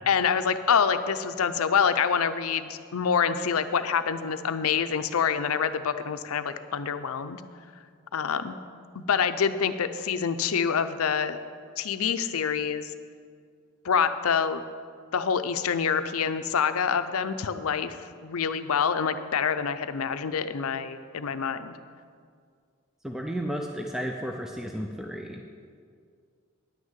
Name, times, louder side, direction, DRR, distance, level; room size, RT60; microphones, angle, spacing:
voice 1, 0.1-7.4 8.1-8.6 8.9-11.4 11.8-12.9 13.8-14.6 15.1-21.8, left 6 dB, 90° left, 11 dB, 0.5 m, -26 dB
voice 2, 23.0-25.4, equal, ahead, 2 dB, 0.5 m, -33 dB
10.5 x 6.4 x 7.3 m, 2.1 s
head